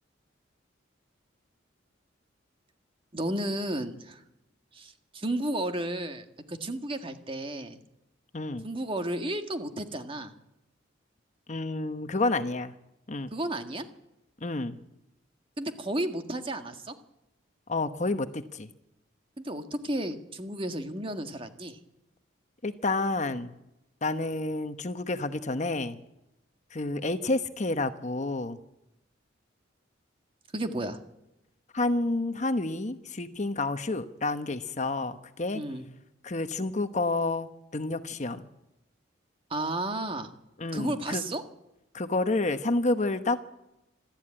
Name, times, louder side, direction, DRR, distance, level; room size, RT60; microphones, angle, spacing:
voice 1, 3.1-4.2 4.7-7.8 8.6-10.3 13.3-13.9 15.6-16.9 19.4-21.8 30.5-31.0 35.5-35.8 39.5-40.3 40.7-41.4, right 1 dB, 25° right, 7 dB, 1.7 m, -33 dB
voice 2, 8.3-8.7 11.5-12.7 13.1-13.3 14.4-14.8 17.7-18.7 22.6-23.5 24.0-26.0 26.7-28.6 31.7-35.6 36.2-38.4 40.6-41.2 41.9-43.4, left 2 dB, 40° left, 9 dB, 1.0 m, -29 dB
26.5 x 13.0 x 8.9 m, 0.91 s
head